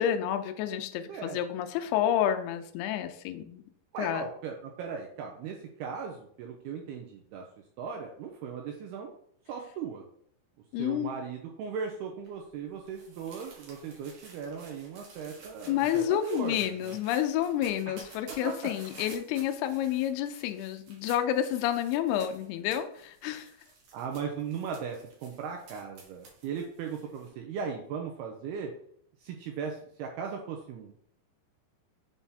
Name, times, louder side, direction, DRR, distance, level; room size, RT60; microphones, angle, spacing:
voice 1, 0.0-3.6 4.0-4.2 10.7-11.1 15.7-23.5, left 10 dB, 85° left, 7 dB, 2.3 m, -29 dB
voice 2, 1.1-1.4 3.9-7.4 7.8-9.1 9.5-10.0 10.8-16.0 16.3-16.6 16.8-17.0 17.9-18.0 18.4-18.5 23.9-28.7 29.2-31.0, right 6 dB, 85° right, 2 dB, 2.3 m, -38 dB
sound 1, 12.2-27.3, right 3 dB, 60° right, 2.3 m, -53 dB
7.2 x 4.1 x 3.5 m, 0.64 s
omnidirectional pair, 5.3 m